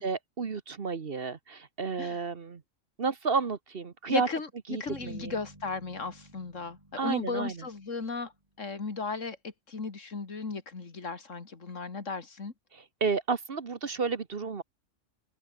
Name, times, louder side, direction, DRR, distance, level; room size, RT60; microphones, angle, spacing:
voice 1, 0.0-2.6 3.0-4.3 4.7-5.4 7.0-7.5 13.0-14.6, right 5 dB, 50° right, 1.3 m, -31 dB
voice 2, 4.1-8.3 8.6-12.5, left 4 dB, 70° left, 2.7 m, -36 dB
Bass guitar, 4.9-8.7, right 1 dB, 25° right, 4.6 m, -53 dB
omnidirectional pair, 1.3 m